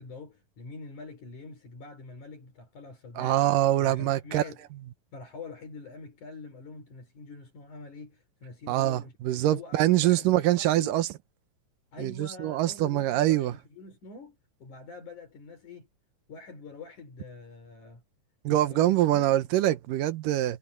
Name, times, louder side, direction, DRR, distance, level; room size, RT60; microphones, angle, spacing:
voice 1, 0.0-3.4 3.7-4.7 5.1-11.0 11.9-15.9 16.3-18.0 18.5-19.5, left 4 dB, 65° left, 5.7 m, -45 dB
voice 2, 3.2-4.4 8.7-11.1 12.0-13.5 18.4-20.6, right 14 dB, 85° right, 2.6 m, -24 dB
omnidirectional pair, 3.8 m